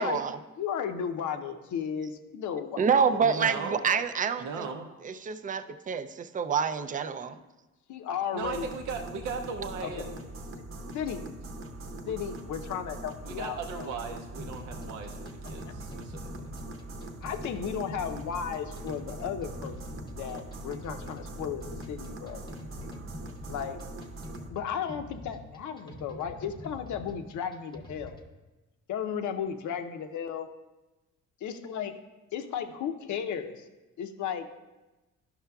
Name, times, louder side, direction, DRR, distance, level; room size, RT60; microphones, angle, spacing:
voice 1, 0.0-0.4 2.8-4.7 5.0-7.4, right 6 dB, 30° right, 11 dB, 0.4 m, -27 dB
voice 2, 0.6-3.2 3.9-4.0 7.3-7.4 7.9-8.7 9.8-10.2 10.9-11.2 12.1-14.0 17.2-22.4 23.5-23.8 24.5-28.2 28.9-30.5 31.4-31.9 32.3-33.7 34.0-34.5, left 8 dB, 75° left, 7 dB, 0.7 m, -35 dB
voice 3, 3.2-3.9 4.4-4.9 8.3-10.3 12.0-12.2 13.2-16.2, right 5 dB, 80° right, 3 dB, 0.6 m, -37 dB
sound 1, 8.4-24.5, right 1 dB, 45° right, 0.8 m, -42 dB
sound 2, 14.4-28.3, left 1 dB, 15° left, 0.8 m, -46 dB
12.0 x 5.6 x 2.3 m, 1.1 s
cardioid pair, 90°, 30 cm